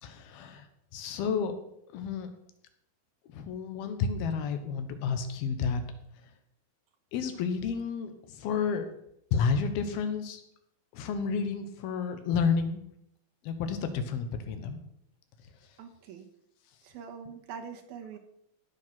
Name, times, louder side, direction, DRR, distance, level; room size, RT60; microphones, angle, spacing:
voice 1, 0.0-0.7 0.9-1.5 1.9-2.3 3.3-5.8 7.1-8.9 9.3-10.4 10.9-12.8 13.4-14.8, left 5 dB, 90° left, 8 dB, 3.1 m, -30 dB
voice 2, 15.8-16.3 16.8-18.2, right 6 dB, 85° right, 4 dB, 3.2 m, -43 dB
16.5 x 6.5 x 6.0 m, 0.76 s
omnidirectional pair, 4.2 m